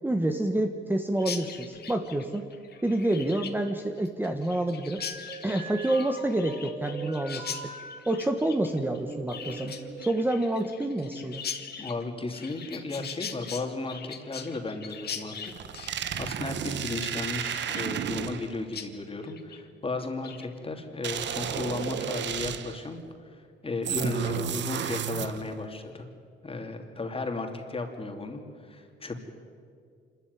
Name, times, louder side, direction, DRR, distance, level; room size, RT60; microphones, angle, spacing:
voice 1, 0.0-2.5 2.8-5.0 5.4-7.7 8.1-9.7 10.0-11.4, right 1 dB, 10° right, 5 dB, 1.3 m, -28 dB
Chirp tweet, 1.2-18.4 18.7-18.9 19.2-19.6 20.0-20.5, left 7 dB, 55° left, 1.9 m, -41 dB
sound 1, 5.0-8.0 8.5-10.1, right 2 dB, 45° right, 6.8 m, -41 dB
voice 2, 11.8-23.0 23.3-26.0 26.4-29.2, left 3 dB, 30° left, 4 dB, 3.0 m, -35 dB
sound 2, 15.5-18.6 21.0-22.9 23.9-25.6, right 9 dB, 65° right, 1.1 m, -32 dB
26.0 x 13.5 x 9.6 m, 2.2 s
cardioid pair, 90°, 20 cm